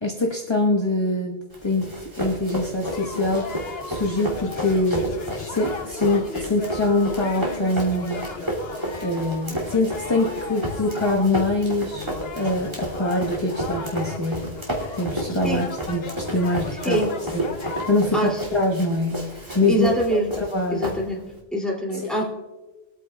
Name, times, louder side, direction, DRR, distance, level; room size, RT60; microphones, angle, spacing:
voice 1, 0.0-1.9 2.2-5.1 5.4-8.2 9.0-12.1 12.3-14.5 14.9-17.0 17.3-19.9 20.4-20.9 21.9-22.2, left 2 dB, 25° left, -2 dB, 1.3 m, -24 dB
Run, 1.5-21.4, right 1 dB, 25° right, 2.6 m, -32 dB
sound 1, 2.8-18.0, left 4 dB, 70° left, 1.2 m, -36 dB
voice 2, 19.7-20.3 20.7-21.2 21.5-22.2, right 1 dB, ahead, -3 dB, 2.6 m, -24 dB
22.5 x 9.0 x 2.3 m, 1.1 s
omnidirectional pair, 1.1 m